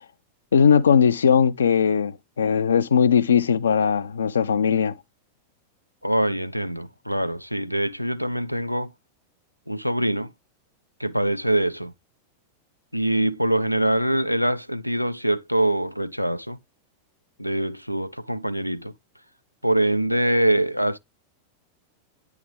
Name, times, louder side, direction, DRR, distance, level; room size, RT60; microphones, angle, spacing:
voice 1, 0.5-4.9, left 7 dB, 70° left, 0.5 m, -19 dB
voice 2, 6.0-8.9 9.7-10.3 11.0-11.9 12.9-16.6 17.4-18.9 19.6-21.0, right 1 dB, 90° right, 0.5 m, -24 dB
10.0 x 3.5 x 3.5 m
figure-of-eight pair, 90°, 0 cm